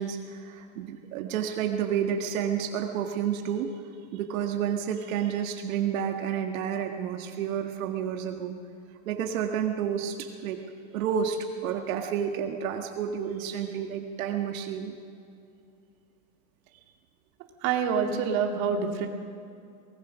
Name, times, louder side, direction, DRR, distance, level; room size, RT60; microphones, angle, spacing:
voice 1, 0.0-3.7 4.1-8.5 9.1-10.6 10.9-15.0, right 8 dB, 70° right, 4 dB, 1.8 m, -30 dB
voice 2, 17.6-19.1, right 6 dB, 45° right, 2 dB, 2.4 m, -26 dB
23.5 x 19.5 x 6.3 m, 2.6 s
supercardioid pair, 170°, 42 cm